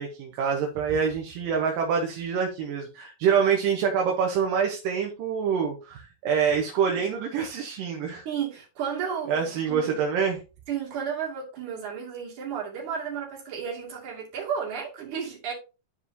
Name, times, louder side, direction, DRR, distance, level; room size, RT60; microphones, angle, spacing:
voice 1, 0.0-8.3 9.3-10.4, right 6 dB, 80° right, 2.7 m, -26 dB
voice 2, 8.3-10.0 10.7-15.5, right 7 dB, 65° right, 3.8 m, -33 dB
11.5 x 4.9 x 2.7 m
omnidirectional pair, 3.9 m